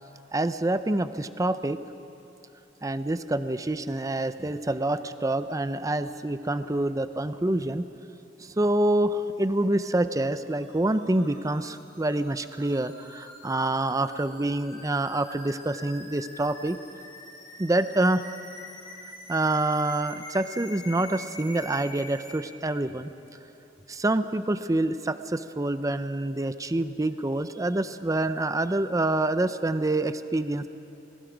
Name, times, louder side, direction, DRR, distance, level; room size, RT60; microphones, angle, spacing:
voice 1, 0.3-1.8 2.8-7.9 8.4-16.8 17.6-18.2 19.3-23.1 23.9-30.7, right 2 dB, 20° right, 11 dB, 0.6 m, -26 dB
buildup sine high, 10.1-22.4, left 2 dB, 25° left, 5.4 m, -46 dB
29.0 x 22.0 x 5.2 m, 2.8 s
head